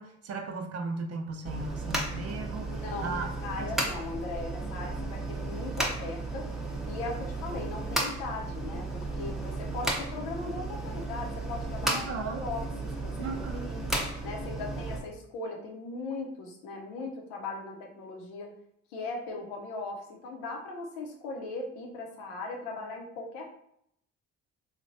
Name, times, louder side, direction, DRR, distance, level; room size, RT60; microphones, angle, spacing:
voice 1, 0.0-3.3 3.6-3.7 11.9-12.5 13.2-13.7, right 3 dB, 45° right, 3 dB, 0.6 m, -36 dB
sound 1, 1.5-15.0, right 2 dB, ahead, 0.6 m, -34 dB
voice 2, 2.7-6.5 6.9-13.8 14.2-18.5 18.9-23.5, left 3 dB, 85° left, 1 dB, 0.7 m, -39 dB
3.2 x 2.2 x 2.6 m, 0.72 s
hypercardioid pair, 60°, 35 cm